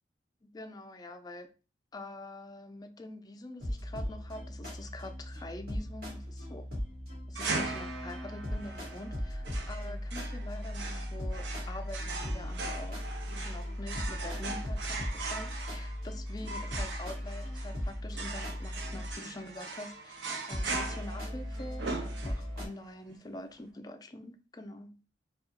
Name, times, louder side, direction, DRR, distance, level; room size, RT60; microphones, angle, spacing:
voice 1, 0.4-1.5 1.9-6.7 7.3-13.0 13.4-24.9, left 1 dB, 20° left, 0.4 m, -45 dB
sound 1, 3.6-19.3 20.2-22.7, equal, 55° right, 1.7 m, -38 dB
sound 2, 7.3-22.7, right 3 dB, 80° right, 0.6 m, -40 dB
3.6 x 2.3 x 2.8 m
head